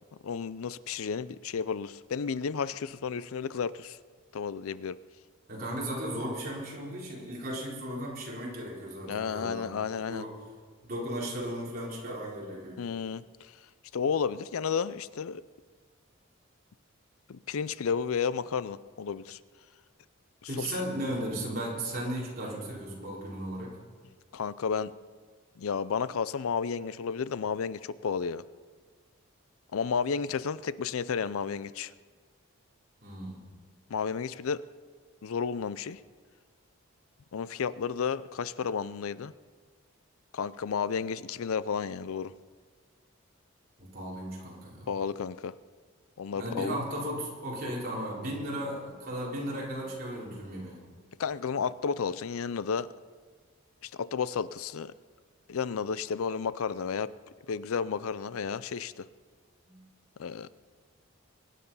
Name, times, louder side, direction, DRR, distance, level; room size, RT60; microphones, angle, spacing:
voice 1, 0.2-4.0 4.3-5.0 9.1-10.3 12.8-13.5 13.9-15.4 17.3-19.4 20.6-20.7 24.3-24.9 25.6-28.4 29.7-31.9 33.9-34.6 35.2-36.0 37.3-39.3 40.3-42.3 44.9-45.5 46.2-46.8 51.2-52.9 53.8-54.9 55.5-57.1 57.5-59.1 60.2-60.5, left 6 dB, 75° left, 17 dB, 0.5 m, -32 dB
voice 2, 5.5-9.7 10.1-10.3 10.8-12.8 20.5-23.8 33.0-33.4 43.8-44.9 46.4-50.8 59.6-59.8, right 1 dB, 40° right, -5 dB, 4.3 m, -36 dB
23.5 x 10.0 x 5.6 m, 1.5 s
head